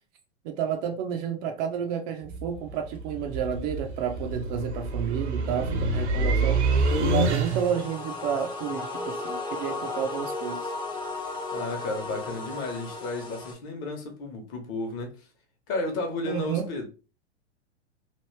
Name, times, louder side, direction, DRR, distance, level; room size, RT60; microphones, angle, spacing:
voice 1, 0.4-6.6 7.0-10.7 16.3-16.7, right 8 dB, 35° right, 0.5 m, -30 dB
sound 1, 2.2-7.9, right 3 dB, 70° right, 0.9 m, -27 dB
sound 2, 7.5-13.5, left 3 dB, 15° left, 0.6 m, -35 dB
voice 2, 11.5-15.1 15.7-16.9, left 2 dB, 35° left, 1.0 m, -32 dB
3.1 x 2.5 x 3.1 m
figure-of-eight pair, 105°, 35 cm